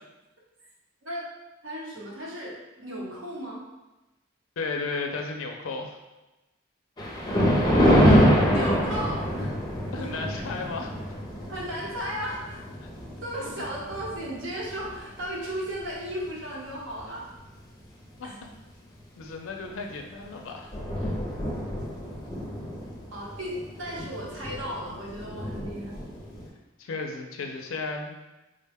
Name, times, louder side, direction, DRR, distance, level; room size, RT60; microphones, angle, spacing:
voice 1, 1.6-3.6 7.8-9.5 10.0-10.1 11.5-12.6 13.2-17.3 18.2-18.3 23.1-26.1, equal, 70° right, -4 dB, 0.9 m, -35 dB
voice 2, 4.6-6.0 9.9-10.9 12.8-12.9 13.4-13.5 18.2-18.3 19.2-21.2 26.8-28.2, left 3 dB, 80° left, 3 dB, 0.4 m, -34 dB
Thunder, 7.0-15.5 16.0-16.3 17.0-17.1 17.4-17.5 19.7-19.9 20.2-20.3 20.5-26.5, equal, 20° left, 0.5 m, -26 dB
3.7 x 2.2 x 3.4 m, 1.0 s
head